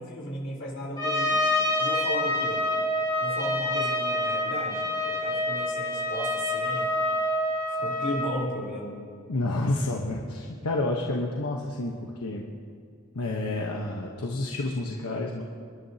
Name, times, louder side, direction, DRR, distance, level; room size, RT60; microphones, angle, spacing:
voice 1, 0.0-1.4 1.8-2.6 3.2-6.9 7.7-9.0, equal, 60° left, -3 dB, 3.6 m, -35 dB
Trumpet, 1.0-8.3, left 1 dB, 20° left, 2.8 m, -27 dB
voice 2, 9.3-12.5 13.1-15.4, left 2 dB, 80° left, -1 dB, 1.1 m, -29 dB
29.0 x 11.0 x 2.8 m, 2.3 s
head